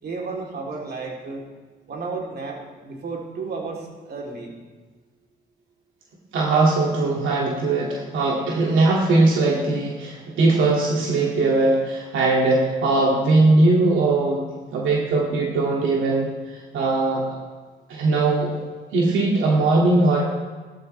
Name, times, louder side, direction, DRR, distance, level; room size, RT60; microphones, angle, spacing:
voice 1, 0.0-1.5 1.9-4.5, right 4 dB, 55° right, -1 dB, 3.2 m, -32 dB
voice 2, 6.3-14.4 14.7-17.2 17.9-18.6 18.9-20.2, right 2 dB, 80° right, -3 dB, 2.2 m, -20 dB
17.0 x 12.5 x 3.3 m, 1.4 s
cardioid pair, 90°, 20 cm